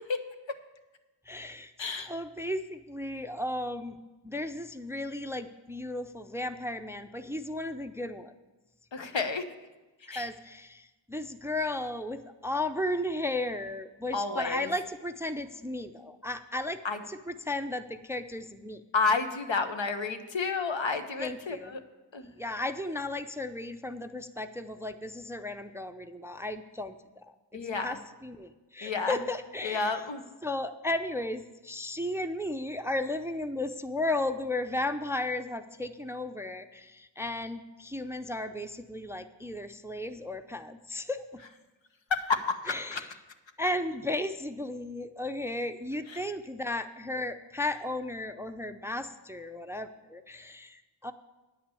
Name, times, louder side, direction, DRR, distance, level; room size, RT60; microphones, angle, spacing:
voice 1, 1.3-1.7 2.0-4.0 4.2-8.3 10.1-16.8 17.1-18.8 21.2-21.8 22.4-27.3 27.5-30.0 30.4-41.4 42.7-43.1 43.6-51.1, left 1 dB, 5° right, 10 dB, 0.4 m, -35 dB
voice 2, 1.8-2.1 8.9-9.4 10.1-10.3 14.1-14.7 16.8-17.0 18.9-21.8 22.1-22.3 27.5-28.0 28.8-29.2 29.6-30.2 42.1-43.0 46.1-46.2, left 4 dB, 70° left, 7 dB, 0.9 m, -30 dB
9.5 x 5.8 x 8.3 m, 1.1 s
wide cardioid pair, 45°, 46 cm